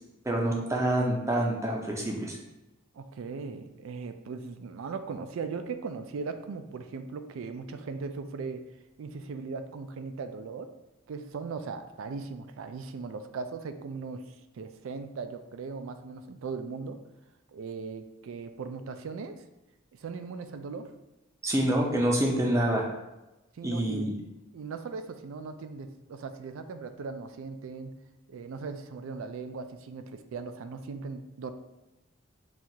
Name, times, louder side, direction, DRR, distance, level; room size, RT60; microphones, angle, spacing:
voice 1, 0.2-2.4 21.4-22.9 23.6-24.1, right 1 dB, 15° right, -1 dB, 0.5 m, -27 dB
voice 2, 2.9-8.6 9.0-10.7 11.1-14.2 14.5-17.0 17.5-19.4 19.9-20.9 23.6-24.1 24.5-28.0 28.3-31.5, right 4 dB, 75° right, 9 dB, 0.3 m, -38 dB
6.0 x 2.4 x 2.7 m, 0.99 s
head